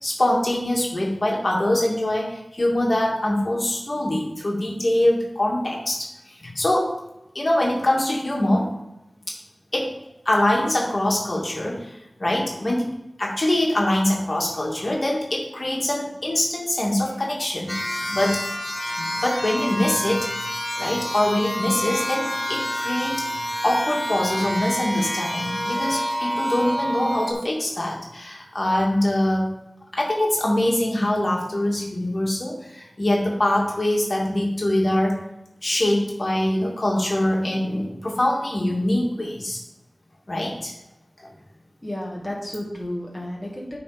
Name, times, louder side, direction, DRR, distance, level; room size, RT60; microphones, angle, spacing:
voice 1, 0.0-7.0 7.3-8.7 9.3-9.4 9.7-9.9 10.3-12.9 13.2-17.7 18.0-20.3 20.8-23.2 23.6-29.5 29.9-35.2 35.6-39.6 40.3-40.7 41.2-41.3, left 1 dB, 50° left, -2 dB, 2.1 m, -23 dB
sound 1, 17.7-27.3, equal, 35° left, 0.9 m, -28 dB
voice 2, 41.8-43.8, left 1 dB, 20° left, -2 dB, 1.9 m, -32 dB
8.5 x 4.2 x 5.0 m, 0.90 s
cardioid pair, 40°, 0 cm